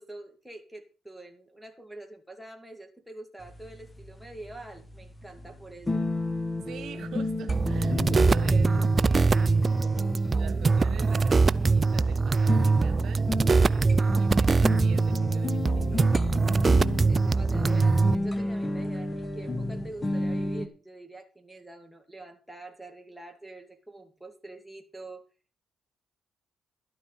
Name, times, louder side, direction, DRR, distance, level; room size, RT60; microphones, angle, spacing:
voice 1, 0.0-6.1 17.1-25.2, right 2 dB, ahead, 3 dB, 2.6 m, -45 dB
sound 1, 3.4-20.7, left 2 dB, 20° left, 1.5 m, -33 dB
voice 2, 6.7-13.3 13.6-16.4, right 8 dB, 70° right, 8 dB, 1.9 m, -43 dB
sound 2, 7.5-18.1, right 4 dB, 30° right, 0.5 m, -23 dB
12.5 x 9.2 x 5.1 m, 0.34 s
cardioid pair, 90°, 0 cm